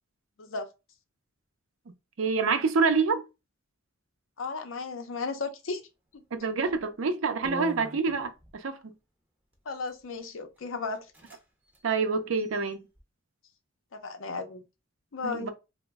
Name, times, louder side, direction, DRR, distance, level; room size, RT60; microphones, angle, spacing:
voice 1, 2.2-3.3 6.3-8.9 11.8-12.8 15.2-15.5, right 4 dB, 75° right, 0.5 m, -27 dB
voice 2, 4.4-5.8 9.7-11.0 13.9-14.6 15.1-15.5, left 4 dB, 70° left, 0.6 m, -34 dB
sound 1, 6.6-6.8 7.4-8.6 9.5-10.0 10.6-10.7 10.9-11.4 11.7-11.8 12.3-13.0, left 2 dB, 10° right, 0.6 m, -44 dB
2.9 x 2.1 x 3.4 m
head